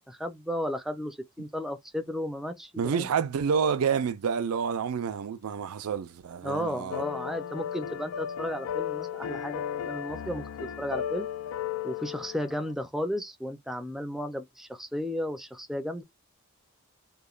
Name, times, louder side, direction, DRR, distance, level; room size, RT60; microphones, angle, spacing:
voice 1, 0.1-3.1 6.4-11.3 11.8-16.0, equal, ahead, 0.4 m, -34 dB
voice 2, 2.8-7.0, right 6 dB, 85° right, 0.4 m, -28 dB
sound 1, 6.9-12.7, left 9 dB, 85° left, 0.3 m, -35 dB
3.0 x 2.1 x 2.4 m
head